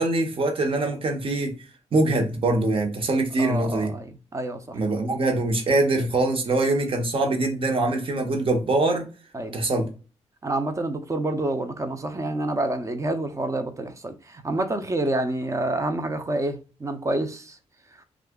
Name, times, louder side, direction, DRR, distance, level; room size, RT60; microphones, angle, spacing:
voice 1, 0.0-1.5 1.9-3.9 4.7-9.1 9.5-9.9, right 2 dB, 50° right, 1.0 m, -23 dB
voice 2, 3.4-4.8 9.3-9.6 10.4-17.6, right 1 dB, 25° right, 0.6 m, -28 dB
2.7 x 2.5 x 3.5 m
cardioid pair, 80°, 12 cm